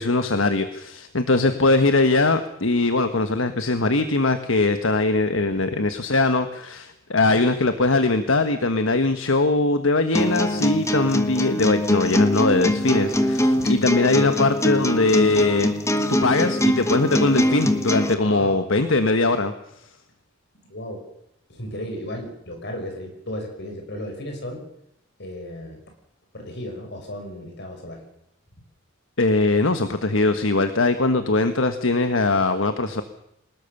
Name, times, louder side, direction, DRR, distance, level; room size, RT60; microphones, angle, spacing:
voice 1, 0.0-15.7 16.1-19.5 29.2-33.0, left 2 dB, 75° left, 9 dB, 1.4 m, -21 dB
sound 1, 10.1-18.1, left 1 dB, 15° left, 1.5 m, -23 dB
voice 2, 13.4-13.8 18.1-18.7 20.7-21.0 21.5-24.6 25.2-25.8 26.3-28.0, left 1 dB, 55° left, 4 dB, 6.1 m, -35 dB
23.5 x 20.0 x 6.7 m, 0.81 s
head